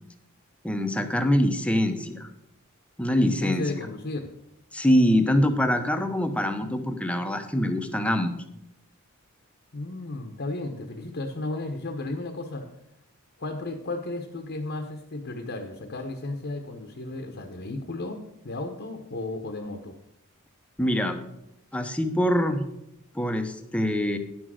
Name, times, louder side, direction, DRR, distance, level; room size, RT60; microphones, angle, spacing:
voice 1, 0.6-2.3 3.0-3.6 4.7-8.3 20.8-21.2 21.7-22.6 23.1-24.2, equal, 5° left, 7 dB, 0.8 m, -24 dB
voice 2, 3.3-4.3 6.3-6.7 9.7-12.6 13.4-20.0, left 2 dB, 55° left, 4 dB, 1.0 m, -34 dB
10.0 x 6.1 x 6.3 m, 0.84 s
head